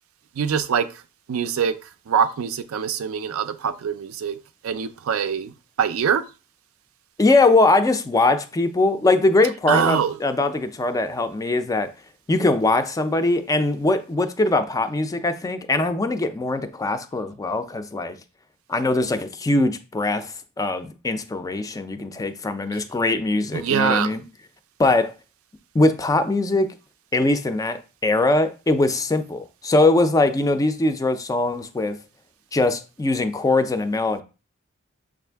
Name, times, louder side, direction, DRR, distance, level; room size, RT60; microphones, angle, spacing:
voice 1, 0.4-0.9 1.3-1.7 2.1-4.4 4.6-6.2 9.7-10.1 23.5-24.1, right 7 dB, 70° right, 0.4 m, -23 dB
voice 2, 7.2-11.9 12.3-18.2 18.7-24.2 24.8-25.1 25.7-26.7 27.1-32.0 32.5-34.2, left 2 dB, 15° left, 0.3 m, -21 dB
6.3 x 2.5 x 3.4 m
head